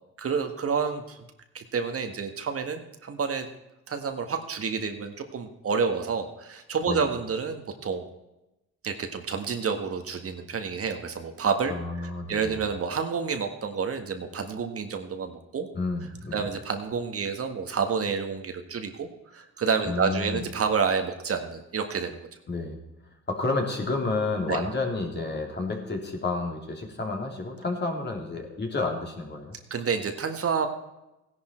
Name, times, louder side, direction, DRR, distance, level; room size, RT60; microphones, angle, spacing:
voice 1, 0.2-1.2 1.5-3.5 3.9-8.1 8.8-15.7 16.3-22.2 24.5-24.6 29.7-30.7, right 5 dB, 50° right, 6 dB, 1.7 m, -29 dB
voice 2, 11.7-12.6 15.7-16.5 19.8-20.4 22.5-22.8 23.3-29.6, left 3 dB, 35° left, 1 dB, 3.3 m, -30 dB
16.0 x 11.0 x 4.5 m, 0.94 s
cardioid pair, 90°, 30 cm